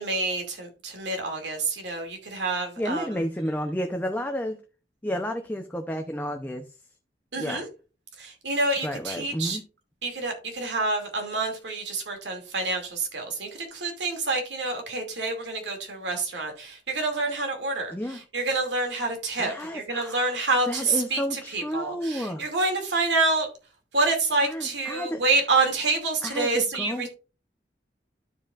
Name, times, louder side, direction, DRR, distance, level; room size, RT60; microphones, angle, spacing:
voice 1, 0.0-3.2 7.3-7.6 8.2-9.6 10.0-23.5 23.9-27.1, right 3 dB, 90° right, 2.4 m, -27 dB
voice 2, 2.8-4.6 5.0-6.7 7.4-7.7 8.8-9.6 17.9-18.2 19.4-20.3 20.7-22.4 24.4-25.2 26.2-27.1, equal, 10° left, 0.6 m, -31 dB
12.5 x 5.0 x 2.4 m
head